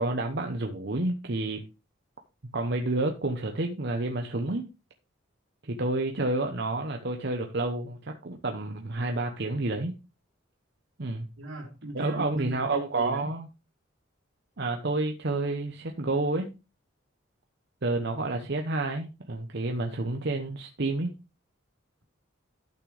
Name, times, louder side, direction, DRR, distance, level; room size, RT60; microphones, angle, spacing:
voice 1, 0.0-1.6 2.5-4.6 5.6-9.9 11.0-11.3 11.9-13.5 14.6-16.6 17.8-21.1, right 2 dB, 55° right, 0.9 m, -29 dB
voice 2, 11.4-13.3, right 1 dB, 80° right, 3.7 m, -37 dB
12.0 x 6.2 x 3.3 m
head